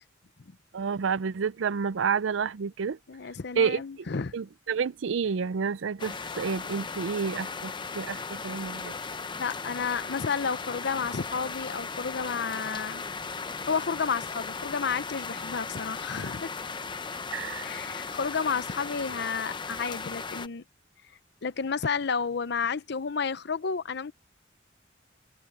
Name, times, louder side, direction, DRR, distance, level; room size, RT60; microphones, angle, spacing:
voice 1, 0.7-3.0 3.6-3.8 4.3-8.9 17.3-17.7, right 6 dB, 75° right, 0.5 m, -29 dB
voice 2, 3.1-4.4 9.4-13.0 13.7-16.5 17.6-20.6 21.4-24.1, left 5 dB, 60° left, 0.7 m, -31 dB
sound 1, 6.0-20.5, left 4 dB, 25° left, 0.8 m, -37 dB
head